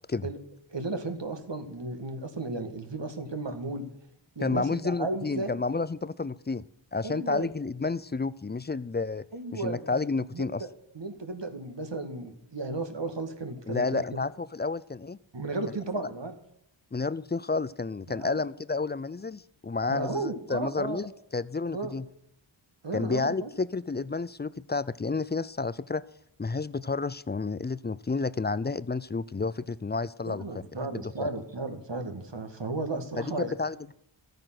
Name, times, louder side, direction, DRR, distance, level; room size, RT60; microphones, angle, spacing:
voice 1, 0.7-3.9 4.4-5.5 7.0-7.5 9.3-10.0 10.3-10.7 10.9-14.2 15.3-16.3 18.1-18.4 19.9-21.0 21.7-21.9 22.8-23.5 30.2-33.5, right 3 dB, 60° right, 7 dB, 1.8 m, -34 dB
voice 2, 4.4-6.6 6.9-9.2 9.5-10.6 13.7-15.2 16.9-22.1 22.9-26.0 26.4-30.4 30.9-31.3 33.2-33.9, left 4 dB, 20° left, 19 dB, 0.4 m, -30 dB
13.5 x 8.9 x 6.0 m, 0.76 s
wide cardioid pair, 45°, 49 cm